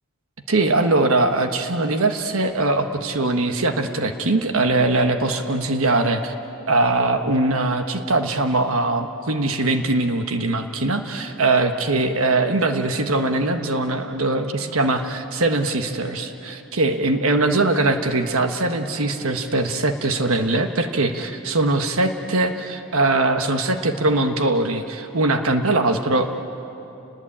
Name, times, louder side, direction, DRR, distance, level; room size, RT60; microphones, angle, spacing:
voice 1, 0.5-6.3 6.7-26.3, right 2 dB, 65° right, 6 dB, 1.4 m, -21 dB
30.0 x 20.5 x 8.7 m, 2.9 s
head